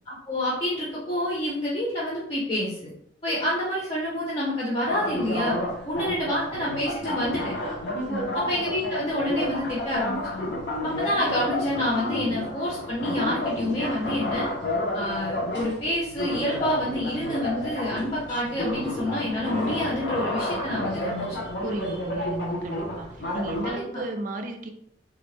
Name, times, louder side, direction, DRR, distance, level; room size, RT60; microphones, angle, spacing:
voice 1, 0.1-2.9 3.2-5.6 5.9-7.5 8.3-10.5 10.8-14.5 14.9-21.4 23.7-24.0, left 1 dB, 30° left, -6 dB, 0.7 m, -28 dB
sound 1, 4.9-23.7, left 1 dB, 70° left, 0.8 m, -31 dB
voice 2, 21.6-24.7, right 2 dB, 45° right, 5 dB, 0.4 m, -34 dB
3.6 x 2.1 x 3.2 m, 0.71 s
head